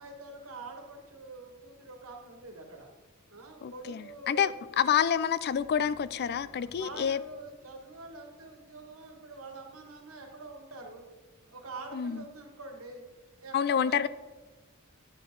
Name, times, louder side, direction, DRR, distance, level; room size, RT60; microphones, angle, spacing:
voice 1, 0.0-2.9 3.3-4.5 6.5-11.1 11.5-13.0 13.4-14.1, right 3 dB, 80° right, 3 dB, 1.8 m, -45 dB
voice 2, 3.6-7.2 11.9-12.2 13.5-14.1, left 8 dB, 50° left, 16 dB, 0.4 m, -28 dB
sound 1, 5.4-9.0, equal, 75° left, 3.2 m, -60 dB
9.9 x 7.8 x 3.9 m, 1.2 s
head